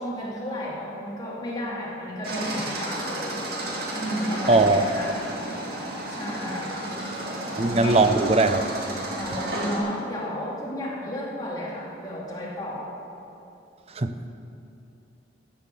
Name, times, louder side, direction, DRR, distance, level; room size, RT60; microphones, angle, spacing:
voice 1, 0.0-3.4 3.9-5.2 6.1-6.8 7.8-8.2 9.2-12.9, equal, 20° left, -6 dB, 2.8 m, -32 dB
sound 1, 2.2-9.8, right 1 dB, 55° right, 2.4 m, -32 dB
voice 2, 4.5-5.0 7.6-8.6 14.0-14.1, right 3 dB, 35° right, 8 dB, 0.6 m, -20 dB
15.5 x 8.0 x 6.9 m, 2.8 s
head